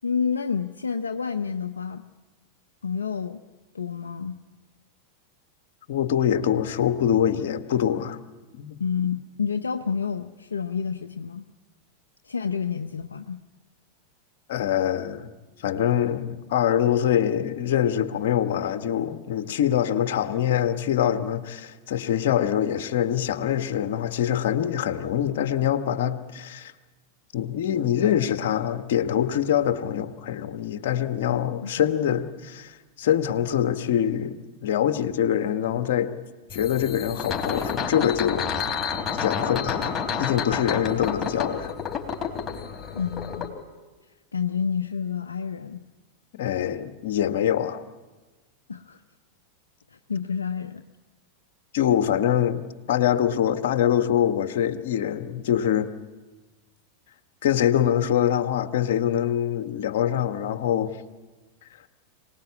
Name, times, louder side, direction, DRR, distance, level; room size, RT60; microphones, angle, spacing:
voice 1, 0.0-2.0 2.8-3.4 3.7-4.4 8.8-11.4 12.2-13.4 31.6-31.9 43.0-43.5 44.3-45.8 48.7-49.0 49.9-50.8, left 6 dB, 85° left, 0.7 m, -29 dB
voice 2, 5.9-8.2 8.6-8.8 14.5-15.3 15.6-26.7 27.3-36.1 36.5-38.5 39.1-41.7 46.4-47.8 51.7-55.9 57.4-61.0, left 10 dB, 65° left, 1.3 m, -24 dB
sound 1, 36.5-43.5, left 6 dB, 20° left, 3.7 m, -30 dB
25.0 x 19.5 x 8.5 m
hypercardioid pair, 95°, 0 cm